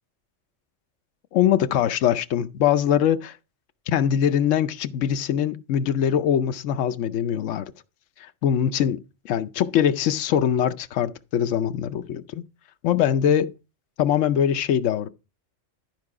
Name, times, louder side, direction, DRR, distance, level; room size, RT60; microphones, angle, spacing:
voice 1, 1.3-3.3 3.9-7.6 8.4-12.4 12.8-13.5 14.0-15.1, left 9 dB, 80° left, 1.0 m, -22 dB
12.5 x 4.8 x 4.8 m
omnidirectional pair, 1.3 m